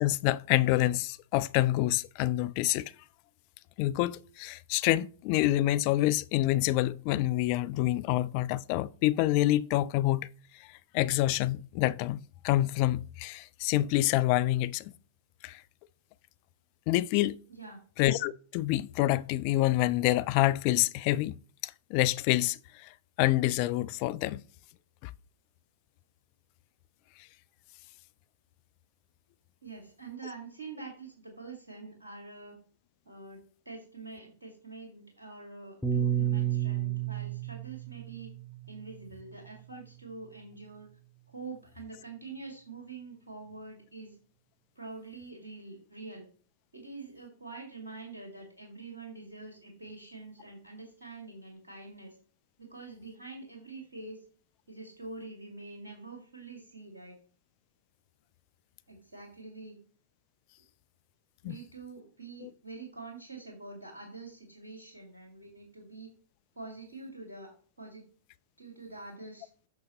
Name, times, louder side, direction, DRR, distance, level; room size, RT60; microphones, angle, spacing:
voice 1, 0.0-2.9 3.8-10.3 10.6-10.7 10.9-14.9 15.4-15.6 16.9-17.4 18.0-21.4 21.6-24.4 25.0-25.1 61.4-61.6 62.4-62.5, left 16 dB, 45° left, 0.4 m, -27 dB
voice 2, 17.5-17.8 29.6-32.6 33.1-38.3 38.7-40.9 41.3-44.2 44.8-46.3 46.7-52.2 52.6-54.3 54.7-57.2 58.9-59.8 61.4-66.1 66.6-68.0 68.6-69.5, right 3 dB, 85° right, 2.1 m, -45 dB
Piano, 35.8-40.3, right 10 dB, 5° left, 1.2 m, -32 dB
8.3 x 6.3 x 3.0 m
figure-of-eight pair, 100°, 0 cm